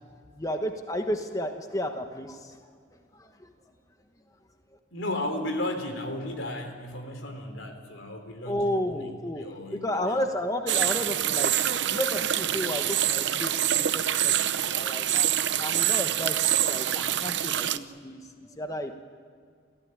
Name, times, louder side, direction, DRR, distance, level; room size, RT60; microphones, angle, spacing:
voice 1, 0.3-2.6 3.1-3.5 8.4-11.5 11.9-15.3 15.6-18.9, left 1 dB, 20° left, 5 dB, 1.3 m, -32 dB
voice 2, 4.9-10.2, left 1 dB, 90° left, 6 dB, 3.7 m, -34 dB
sound 1, 10.7-17.8, right 11 dB, 65° right, 0.7 m, -26 dB
29.5 x 15.0 x 9.9 m, 2.1 s
head